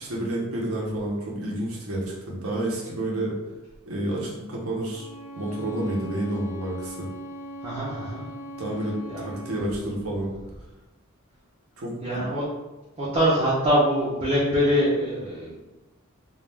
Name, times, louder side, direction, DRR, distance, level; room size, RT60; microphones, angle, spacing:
voice 1, 0.0-3.3 3.9-5.1 5.4-7.1 8.6-10.3 11.8-12.3, right 1 dB, 75° right, -3 dB, 0.7 m, -30 dB
Bowed string instrument, 4.9-9.8, right 1 dB, 85° left, 0.7 m, -39 dB
voice 2, 7.6-8.2 9.1-9.2 12.0-12.4 13.0-15.6, equal, 25° right, -8 dB, 0.5 m, -23 dB
2.3 x 2.2 x 3.2 m, 1.0 s
head